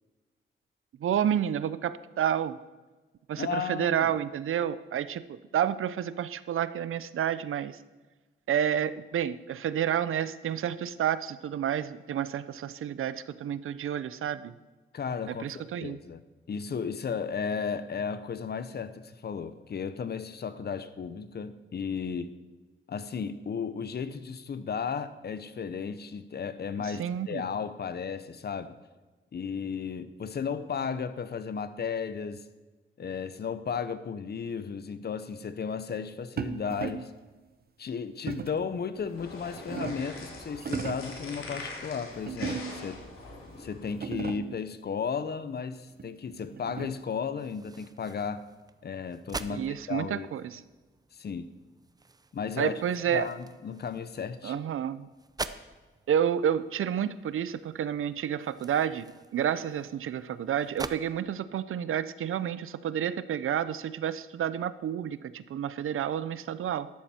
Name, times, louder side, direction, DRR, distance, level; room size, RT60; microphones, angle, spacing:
voice 1, 1.0-2.6 3.3-7.8 8.5-14.5 15.3-16.0 26.8-27.5 49.5-50.6 52.6-53.3 54.4-55.1 56.1-66.9, right 9 dB, 80° right, 15 dB, 0.6 m, -30 dB
voice 2, 3.4-4.1 14.9-16.2 16.5-22.3 22.9-28.8 29.3-32.4 33.0-37.1 37.8-43.0 43.6-48.5 48.8-50.3 51.1-51.5 52.3-52.7 53.1-54.6, left 6 dB, 50° left, 13 dB, 0.8 m, -34 dB
sound 1, 36.4-37.2 38.3-38.7 39.3-40.2 40.6-41.2 42.3-43.0 43.5-43.6 43.9-44.6 46.0-47.2, right 6 dB, 50° right, 0.8 m, -37 dB
sound 2, 38.9-44.0, left 2 dB, 90° left, 3.4 m, -43 dB
sound 3, 47.4-61.0, right 3 dB, 20° right, 0.5 m, -45 dB
13.0 x 12.0 x 4.4 m, 1.3 s
wide cardioid pair, 120°, 21 cm